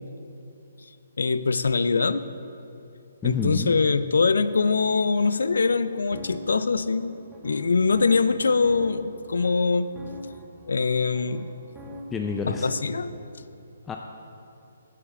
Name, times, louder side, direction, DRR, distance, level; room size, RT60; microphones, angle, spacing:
voice 1, 1.2-2.3 3.2-7.1 7.4-9.9 10.7-11.5 12.5-13.1, left 4 dB, 75° left, 13 dB, 0.4 m, -23 dB
voice 2, 3.2-3.7 12.1-12.7 13.9-14.0, left 5 dB, 15° left, 2 dB, 0.4 m, -28 dB
sound 1, 5.3-13.0, equal, 15° right, 0.9 m, -44 dB
8.4 x 6.7 x 5.6 m, 2.8 s
figure-of-eight pair, 140°, 0 cm